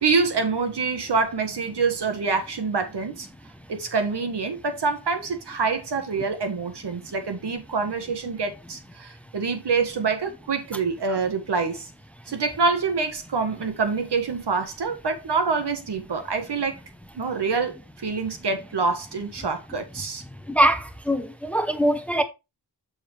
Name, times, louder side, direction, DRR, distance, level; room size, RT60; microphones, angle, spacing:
voice 1, 0.0-3.3 3.7-11.9 12.3-16.8 17.1-20.2, right 4 dB, 75° right, 1.6 m, -26 dB
voice 2, 20.5-22.2, right 1 dB, 5° left, 0.7 m, -23 dB
6.8 x 6.5 x 3.1 m
wide cardioid pair, 125°, 41 cm